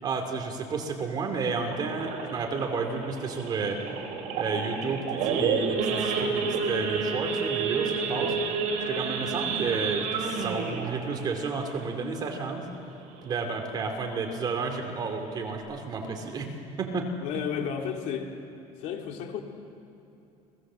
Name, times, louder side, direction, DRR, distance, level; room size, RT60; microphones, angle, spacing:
voice 1, 0.0-3.8 4.3-8.3 8.9-12.7 13.2-16.5 16.8-17.1, right 4 dB, 30° right, 4 dB, 2.7 m, -31 dB
Idling / Accelerating revving vroom / Sawing, 1.7-12.8 13.1-13.4 13.6-13.7 14.2-14.4 14.9-15.0 15.2-15.6, right 5 dB, 60° right, 4.1 m, -30 dB
voice 2, 17.2-18.4 18.8-19.4, left 7 dB, 60° left, 3 dB, 2.6 m, -33 dB
30.0 x 20.0 x 7.6 m, 2.7 s
cardioid pair, 175°, 14 cm